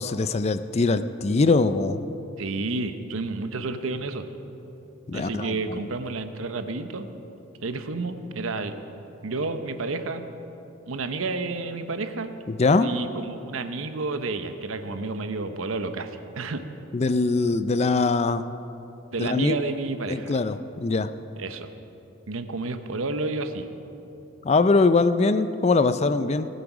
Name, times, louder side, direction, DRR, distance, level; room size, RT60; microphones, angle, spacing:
voice 1, 0.0-2.0 5.1-5.8 12.5-12.9 16.9-18.4 19.2-19.6 20.1-21.1 24.4-26.5, left 3 dB, 30° left, 12 dB, 0.4 m, -22 dB
voice 2, 2.4-4.2 5.1-7.1 7.6-8.7 9.2-10.2 10.9-12.3 12.8-16.6 19.1-20.4 21.4-21.7 22.3-23.7, right 3 dB, 80° right, 9 dB, 0.8 m, -30 dB
18.5 x 8.3 x 6.1 m, 3.0 s
head